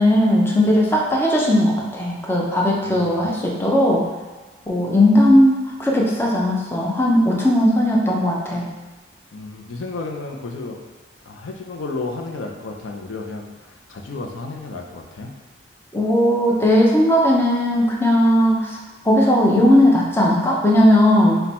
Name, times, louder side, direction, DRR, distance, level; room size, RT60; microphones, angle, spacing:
voice 1, 0.0-4.0 4.7-8.7 15.9-18.8 19.0-21.4, left 1 dB, 10° left, -3 dB, 0.5 m, -17 dB
voice 2, 2.8-3.3 9.3-10.8 11.2-15.3, left 3 dB, 85° left, 2 dB, 0.5 m, -32 dB
4.2 x 2.2 x 4.2 m, 1.3 s
head